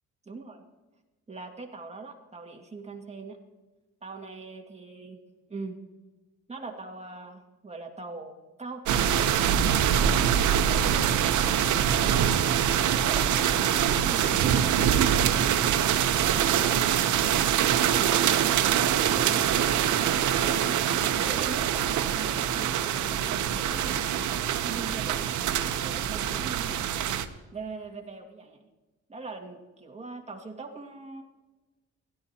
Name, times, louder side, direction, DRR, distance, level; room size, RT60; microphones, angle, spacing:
voice 1, 0.3-0.6 1.3-3.4 4.0-5.2 5.5-5.8 6.5-9.0 10.1-12.4 12.9-15.4 16.5-17.1 17.8-20.6 20.9-24.2 24.6-25.3 25.8-26.8 27.5-28.6 29.1-31.2, right 3 dB, 20° right, 2 dB, 2.1 m, -41 dB
sound 1, 8.9-27.2, right 9 dB, 75° right, 0.9 m, -24 dB
16.5 x 12.5 x 2.9 m, 1.2 s
cardioid pair, 90°, 30 cm